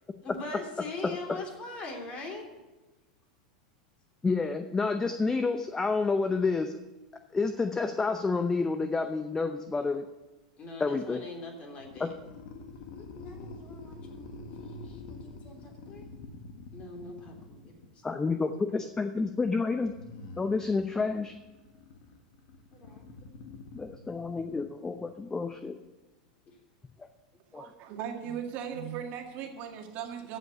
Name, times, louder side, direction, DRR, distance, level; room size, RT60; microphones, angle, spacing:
voice 1, 0.2-2.5 10.6-12.1 12.9-16.1 16.7-17.7 18.3-18.4 22.7-23.0 28.2-28.3 28.7-29.0, left 2 dB, 35° left, 1 dB, 3.3 m, -42 dB
voice 2, 1.0-1.4 4.2-6.8 7.3-10.1 10.8-11.2 12.0-12.1 18.0-19.9 20.4-21.3 23.7-25.8 27.0-27.1 27.5-27.7, left 4 dB, 15° left, 8 dB, 0.7 m, -29 dB
sound 1, 11.8-17.9 19.8-25.0, left 3 dB, 55° left, 1.7 m, -47 dB
voice 3, 27.5-30.4, right 8 dB, 50° right, 3 dB, 1.9 m, -38 dB
15.0 x 5.5 x 8.0 m, 1.1 s
hypercardioid pair, 90°, 4 cm